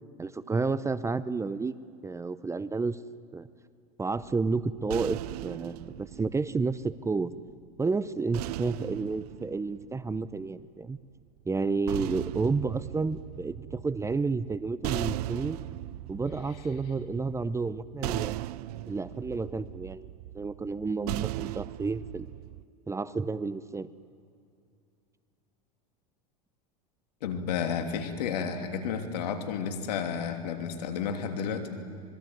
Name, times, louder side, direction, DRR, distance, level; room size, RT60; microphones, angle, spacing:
voice 1, 0.2-1.7 2.0-3.0 3.3-3.5 4.0-7.3 7.8-11.0 11.5-15.6 16.1-18.4 18.9-20.1 20.3-22.3 22.9-23.9, right 4 dB, 15° right, 16 dB, 0.8 m, -31 dB
sound 1, 4.2-7.4 8.3-10.6 11.6-22.6, right 17 dB, 75° right, 0.6 m, -38 dB
voice 2, 27.2-31.8, left 6 dB, 80° left, 7 dB, 3.1 m, -32 dB
25.5 x 21.5 x 9.4 m, 2.3 s
hypercardioid pair, 105°, 20 cm